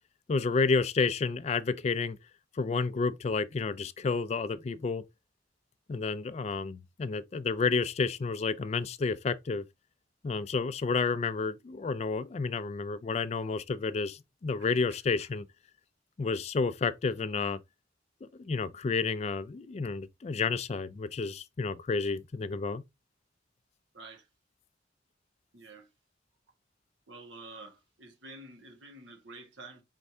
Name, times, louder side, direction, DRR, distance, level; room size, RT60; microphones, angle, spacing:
voice 1, 0.3-2.2 2.5-5.0 5.9-9.6 10.2-15.5 16.2-17.6 18.2-22.8, left 4 dB, 35° left, 0.3 m, -30 dB
voice 2, 23.9-24.3 25.5-25.9 27.1-29.8, right 2 dB, 80° right, 1.2 m, -49 dB
4.5 x 3.2 x 2.7 m
head